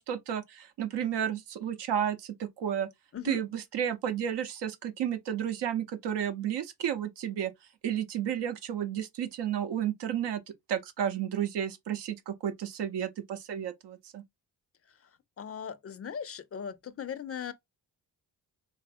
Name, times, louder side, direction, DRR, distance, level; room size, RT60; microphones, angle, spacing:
voice 1, 0.0-2.9 3.2-7.5 7.8-10.4 10.7-14.2, right 9 dB, 90° right, 0.6 m, -32 dB
voice 2, 15.4-17.5, left 8 dB, 40° left, 0.4 m, -38 dB
3.2 x 2.5 x 2.4 m
cardioid pair, 70°, 40 cm